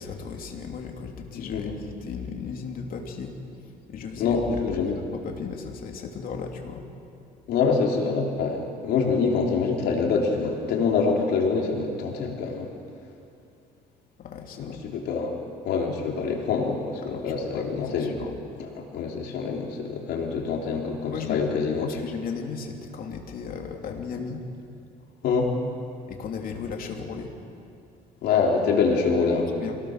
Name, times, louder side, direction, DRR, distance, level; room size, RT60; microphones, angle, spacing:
voice 1, 0.0-3.4 3.9-6.9 14.2-14.9 17.1-18.4 21.1-21.5 21.8-24.5 26.1-27.4 29.6-29.8, left 6 dB, 55° left, 2 dB, 3.0 m, -36 dB
voice 2, 1.3-1.7 4.2-5.0 7.5-12.7 14.6-15.3 15.6-18.1 18.6-21.9 25.2-25.5 28.2-29.5, left 5 dB, 75° left, 0 dB, 3.6 m, -25 dB
26.0 x 18.5 x 6.7 m, 2.5 s
cardioid pair, 110°, 17 cm